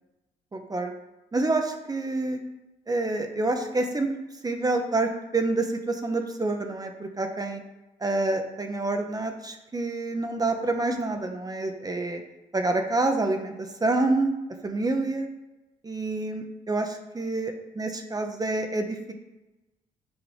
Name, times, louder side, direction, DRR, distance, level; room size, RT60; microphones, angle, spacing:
voice 1, 0.5-0.9 1.3-2.4 2.9-4.1 4.4-7.6 8.0-12.2 12.5-14.3 14.6-15.3 15.8-19.1, right 2 dB, 20° right, 5 dB, 0.8 m, -27 dB
6.3 x 4.8 x 3.3 m, 1.0 s
hypercardioid pair, 55°, 17 cm